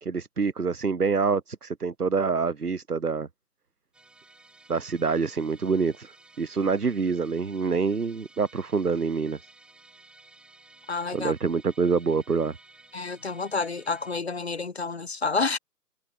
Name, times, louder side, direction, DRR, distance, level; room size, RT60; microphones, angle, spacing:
voice 1, 0.0-3.3 4.7-6.1 6.4-9.4 11.1-12.6, right 5 dB, 65° right, 1.6 m, -26 dB
Musical instrument, 3.9-14.2, right 2 dB, ahead, 7.9 m, -54 dB
voice 2, 10.9-11.3 12.9-15.6, left 4 dB, 40° left, 0.6 m, -29 dB
figure-of-eight pair, 150°, 49 cm